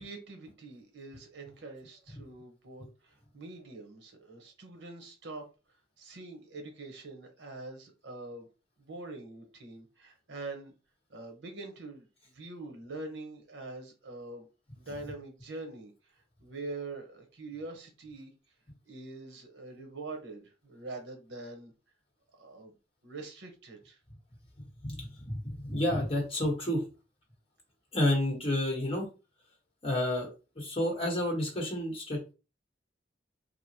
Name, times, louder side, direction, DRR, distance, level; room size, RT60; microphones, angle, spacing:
voice 1, 0.0-5.5 6.0-8.5 8.8-10.7 11.1-14.5 14.8-18.3 18.8-21.7 22.3-22.7 23.0-24.0, right 2 dB, 80° right, 0.9 m, -44 dB
voice 2, 24.8-26.8 27.9-29.1 29.8-32.2, left 1 dB, 30° left, 1.2 m, -30 dB
3.0 x 2.3 x 2.7 m
head